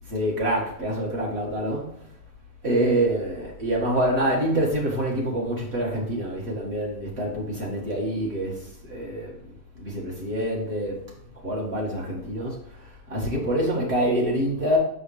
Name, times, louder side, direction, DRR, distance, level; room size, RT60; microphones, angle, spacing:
voice 1, 0.1-2.0 2.6-9.3 9.8-11.0 11.4-12.8 13.1-14.8, right 1 dB, 50° right, -3 dB, 2.1 m, -26 dB
6.0 x 5.6 x 3.3 m, 0.71 s
omnidirectional pair, 1.4 m